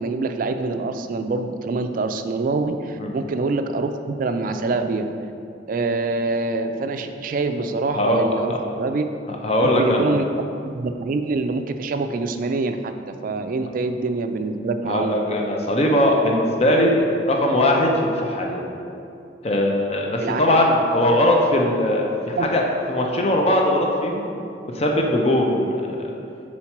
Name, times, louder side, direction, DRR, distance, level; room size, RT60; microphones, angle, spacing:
voice 1, 0.0-5.1 5.7-9.1 9.6-10.2 10.6-12.8 13.1-15.1 20.2-20.4 22.4-22.5, right 3 dB, 50° right, 8 dB, 0.3 m, -25 dB
voice 2, 9.3-10.1 14.9-18.6 19.4-24.3 24.7-26.1, left 1 dB, 35° left, 0 dB, 0.6 m, -20 dB
4.4 x 4.3 x 5.8 m, 2.6 s
head